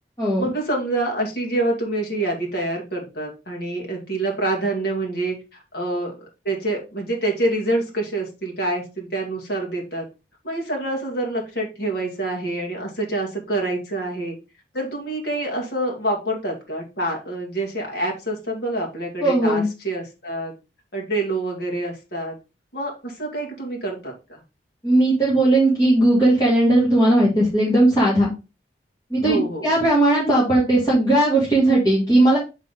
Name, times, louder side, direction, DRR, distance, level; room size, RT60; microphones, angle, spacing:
voice 1, 0.4-6.1 6.4-10.1 10.4-14.4 14.7-20.5 20.9-22.4 22.7-24.4 29.2-29.7, right 2 dB, 60° left, 0 dB, 2.0 m, -26 dB
voice 2, 19.2-19.7 24.8-28.3 29.1-32.4, right 1 dB, 20° left, -7 dB, 1.8 m, -17 dB
6.2 x 4.2 x 3.7 m, 0.28 s
head